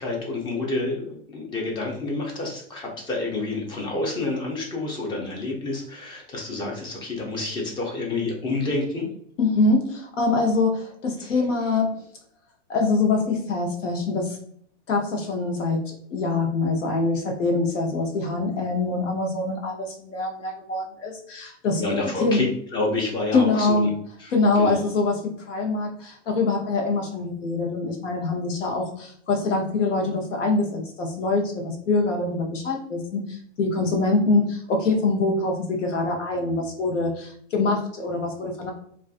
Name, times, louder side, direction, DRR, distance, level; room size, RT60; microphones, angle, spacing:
voice 1, 0.0-9.1 21.8-23.9 24.2-24.3 24.6-24.7, left 2 dB, 15° left, 0 dB, 0.4 m, -28 dB
voice 2, 9.4-12.0 12.7-14.4 14.9-21.8 22.2-22.5 23.3-24.0 24.3-38.7, left 3 dB, 85° left, 2 dB, 0.8 m, -24 dB
2.4 x 2.3 x 2.4 m, 0.63 s
hypercardioid pair, 125°, 36 cm